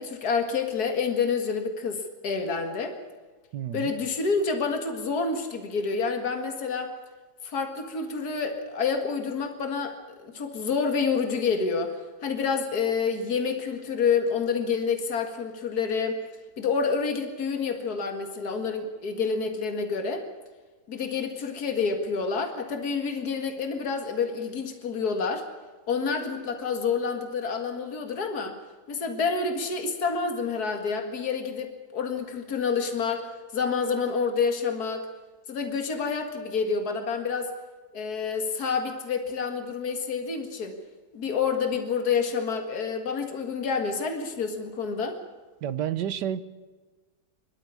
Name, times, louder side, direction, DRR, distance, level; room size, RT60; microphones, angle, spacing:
voice 1, 0.0-3.0 3.7-6.9 7.4-11.9 12.2-16.2 16.6-20.2 20.9-25.5 25.9-28.6 28.9-33.3 33.5-35.1 35.5-37.5 37.9-40.8 41.1-45.2, left 5 dB, 65° left, 5 dB, 2.4 m, -28 dB
voice 2, 3.5-3.9 45.6-46.4, right 10 dB, 80° right, 14 dB, 1.5 m, -30 dB
23.5 x 12.5 x 9.7 m, 1.3 s
omnidirectional pair, 1.8 m